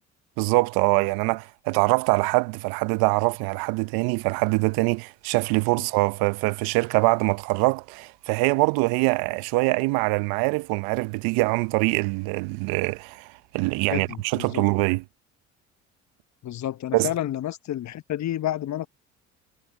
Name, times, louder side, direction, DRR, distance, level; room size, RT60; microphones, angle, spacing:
voice 1, 0.4-13.3 13.5-15.0 16.9-17.1, right 25 dB, 70° right, 1.1 m, -23 dB
voice 2, 13.9-14.6 16.4-18.9, left 12 dB, 45° left, 1.0 m, -30 dB
hypercardioid pair, 55°, 38 cm